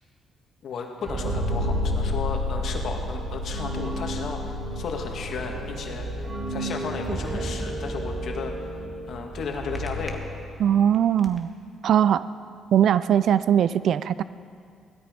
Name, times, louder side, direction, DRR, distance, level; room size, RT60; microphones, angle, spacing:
voice 1, 0.6-10.2, left 5 dB, 65° left, 2 dB, 2.0 m, -34 dB
sound 1, 1.0-10.7, equal, 50° right, 3.6 m, -30 dB
sound 2, 6.8-8.0 9.8-10.1 10.7-11.4, equal, 5° right, 1.5 m, -37 dB
voice 2, 10.6-11.5 11.8-12.2 12.7-14.2, right 9 dB, 70° right, 16 dB, 0.4 m, -20 dB
17.0 x 12.5 x 5.3 m, 2.3 s
cardioid pair, 90°, 0 cm